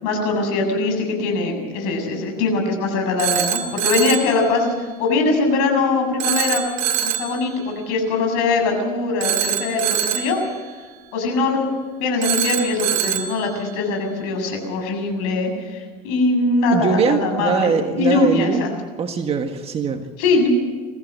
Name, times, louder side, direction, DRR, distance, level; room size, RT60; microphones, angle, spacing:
voice 1, 0.0-4.7 5.0-6.6 7.0-10.4 11.1-11.7 12.0-18.7 20.2-20.5, left 3 dB, 75° left, 3 dB, 7.4 m, -21 dB
Telephone, 3.2-4.4 6.2-7.4 9.2-10.4 12.2-13.4, right 9 dB, 75° right, 2.1 m, -23 dB
voice 2, 16.7-18.7 19.0-20.1, right 6 dB, 35° right, 5 dB, 1.7 m, -21 dB
23.5 x 15.0 x 7.7 m, 1.5 s
supercardioid pair, 120°, 18 cm